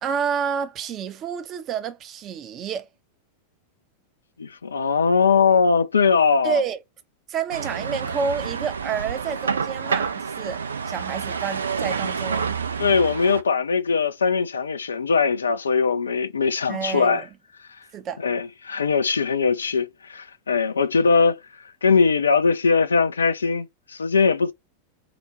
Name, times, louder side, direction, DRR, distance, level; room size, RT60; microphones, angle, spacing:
voice 1, 0.0-2.9 6.4-6.8 7.3-12.6 16.7-17.3 17.9-18.2, right 6 dB, 30° right, 0.6 m, -29 dB
voice 2, 4.4-6.6 12.8-17.2 18.2-21.4 21.8-24.5, left 5 dB, 70° left, 0.4 m, -21 dB
sound 1, 7.5-13.4, right 6 dB, 70° right, 0.4 m, -28 dB
3.8 x 2.2 x 3.2 m
figure-of-eight pair, 90°, 0 cm